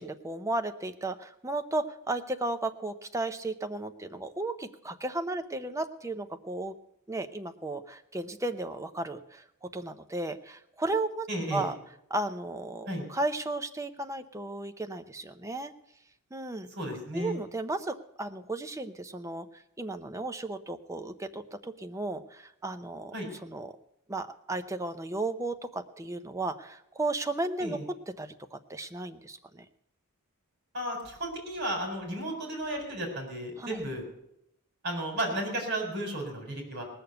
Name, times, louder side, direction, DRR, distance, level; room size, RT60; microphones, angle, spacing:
voice 1, 0.0-6.7 7.1-11.7 12.1-15.7 16.3-16.7 17.1-19.5 19.8-23.1 23.4-23.7 24.1-27.8 28.2-29.6 33.6-33.8, right 2 dB, 15° right, 7 dB, 0.7 m, -34 dB
voice 2, 11.3-11.7 12.9-13.0 16.7-17.4 23.1-23.3 27.6-27.8 30.7-34.0 34.8-36.8, right 1 dB, 50° right, 2 dB, 4.3 m, -33 dB
18.5 x 6.9 x 7.9 m, 0.79 s
head